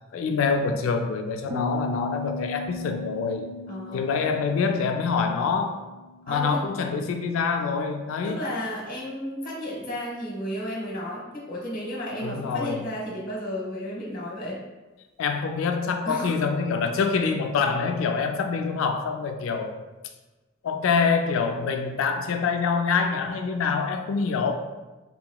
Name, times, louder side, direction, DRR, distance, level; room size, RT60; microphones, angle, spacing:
voice 1, 0.1-3.5 3.9-5.8 6.3-8.4 12.2-12.9 15.2-19.8 20.6-24.5, left 5 dB, 70° left, 7 dB, 0.3 m, -25 dB
Piano, 1.5-7.1, left 2 dB, 35° right, 0.3 m, -38 dB
voice 2, 3.7-4.1 6.3-6.6 8.2-14.6 16.0-16.3, equal, 45° left, -4 dB, 1.0 m, -33 dB
3.5 x 2.9 x 2.2 m, 1.2 s
head